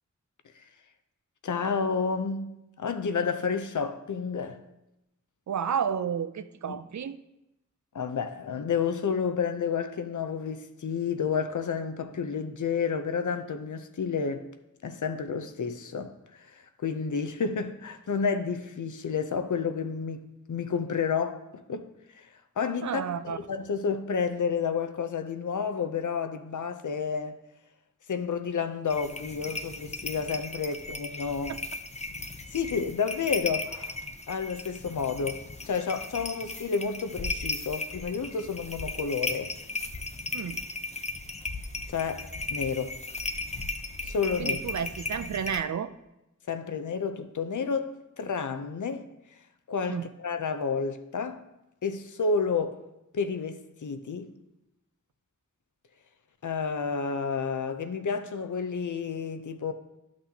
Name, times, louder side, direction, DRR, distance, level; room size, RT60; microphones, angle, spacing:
voice 1, 1.4-4.6 6.7-6.8 7.9-14.5 14.8-21.9 22.1-27.4 28.1-31.6 32.5-39.5 41.9-43.0 44.0-44.6 46.5-49.1 49.7-51.4 51.8-52.8 53.1-54.3 56.4-59.7, left 5 dB, 80° left, 0.6 m, -30 dB
voice 2, 5.5-7.2 22.8-23.4 31.5-31.6 40.3-40.6 44.4-45.9 49.9-50.1, right 7 dB, 70° right, 0.5 m, -31 dB
sound 1, 28.9-45.6, left 3 dB, 20° left, 0.6 m, -36 dB
11.5 x 6.1 x 2.8 m
wide cardioid pair, 75°, 30 cm